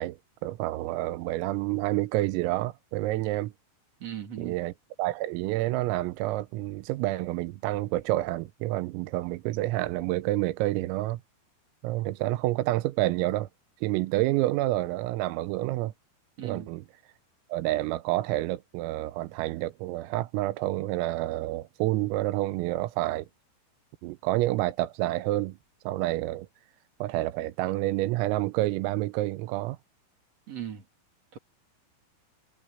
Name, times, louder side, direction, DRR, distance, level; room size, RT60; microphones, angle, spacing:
voice 1, 0.0-3.5 4.4-4.7 5.0-11.2 11.8-13.5 13.8-15.9 16.4-16.9 17.5-23.3 24.0-25.6 25.9-26.5 27.0-29.8, right 17 dB, 90° right, 3.5 m, -28 dB
voice 2, 4.0-4.6 16.4-16.7 30.5-30.8 31.3-31.4, right 10 dB, 45° right, 2.6 m, -38 dB
omnidirectional pair, 6.0 m